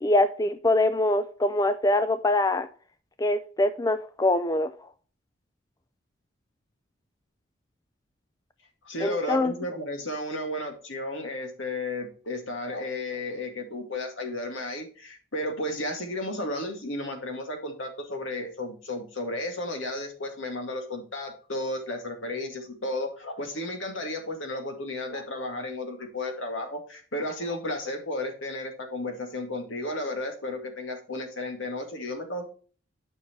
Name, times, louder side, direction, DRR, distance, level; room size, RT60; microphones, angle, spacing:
voice 1, 0.0-2.7 3.2-4.7 9.0-9.5, left 2 dB, 15° left, 0.4 m, -24 dB
voice 2, 8.8-32.5, left 1 dB, 70° left, 2.3 m, -33 dB
9.5 x 6.2 x 3.1 m
head